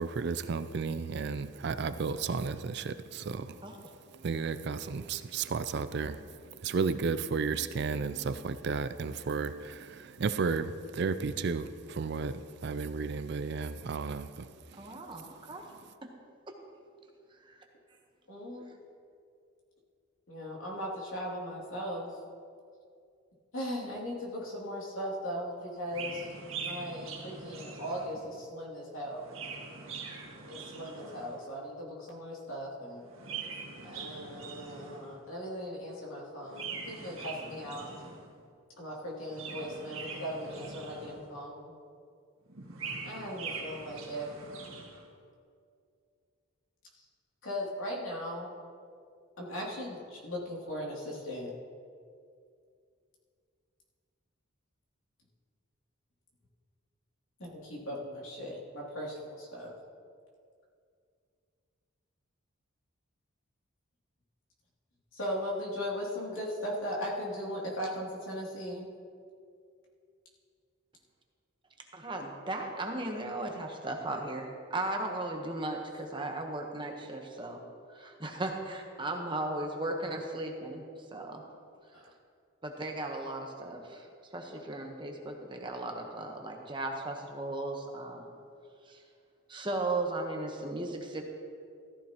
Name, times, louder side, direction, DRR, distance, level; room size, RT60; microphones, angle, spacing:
voice 1, 0.0-3.4 4.2-6.2 6.6-9.8 10.2-12.3 12.6-14.3, right 4 dB, 50° right, 0.4 m, -33 dB
voice 2, 14.7-15.6 16.5-16.6 17.4-17.5 71.9-77.6 77.9-80.8 81.1-81.4 82.6-84.1 84.3-88.3 88.9-89.0 89.5-91.2, right 2 dB, 20° right, 1.0 m, -36 dB
voice 3, 18.3-18.7 20.3-22.1 23.5-26.3 26.6-29.2 30.5-33.0 33.8-37.9 38.8-41.7 43.0-44.3 47.4-48.5 49.4-51.5 57.4-59.7 65.1-68.9 75.7-75.8 81.9-82.0, equal, 75° left, 2.7 m, -38 dB
Chirp tweet, 25.9-28.3 29.0-31.5 33.0-35.2 36.4-38.3 39.1-41.4 42.5-45.0, right 4 dB, 75° right, 1.7 m, -43 dB
14.5 x 14.0 x 3.0 m
head